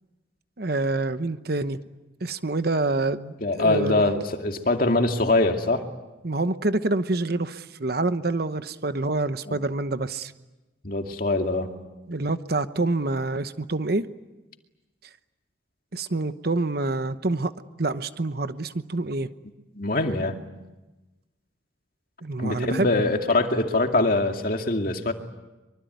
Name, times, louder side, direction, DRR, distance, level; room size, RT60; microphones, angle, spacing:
voice 1, 0.6-1.8 2.2-4.0 6.2-10.3 12.1-14.1 15.9-17.5 17.8-19.3 22.2-22.9, right 2 dB, 55° right, 11 dB, 1.0 m, -27 dB
voice 2, 3.4-5.8 9.5-9.6 10.8-11.8 19.7-20.4 22.4-25.1, left 2 dB, 45° left, 4 dB, 2.4 m, -23 dB
25.0 x 24.0 x 9.3 m, 1.1 s
head